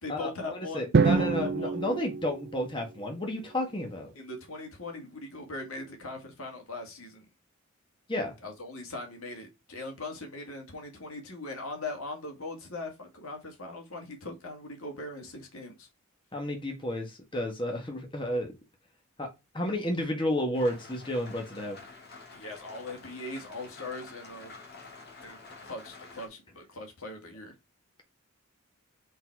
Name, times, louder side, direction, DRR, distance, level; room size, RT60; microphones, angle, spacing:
voice 1, 0.0-1.8 4.1-7.3 8.4-15.9 22.3-24.5 25.2-27.5, left 2 dB, 80° left, 2.1 m, -40 dB
voice 2, 0.7-4.1 8.1-8.3 16.3-18.5 19.2-19.3 19.5-21.8, left 1 dB, 25° left, 1.4 m, -31 dB
Drum, 0.9-3.1, right 4 dB, 50° right, 0.5 m, -26 dB
Rain, 20.5-26.3, left 3 dB, 50° left, 1.9 m, -49 dB
5.5 x 4.1 x 4.6 m
head